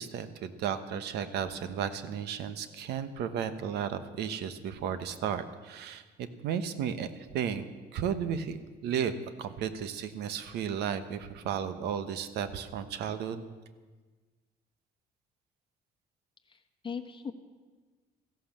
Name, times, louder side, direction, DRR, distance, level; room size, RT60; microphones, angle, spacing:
voice 1, 0.0-7.7 7.9-9.1 9.4-13.4, right 8 dB, 80° right, 12 dB, 1.1 m, -34 dB
voice 2, 16.5-17.3, left 6 dB, 30° left, 7 dB, 1.1 m, -39 dB
14.5 x 11.5 x 7.4 m, 1.4 s
cardioid pair, 110°, 17 cm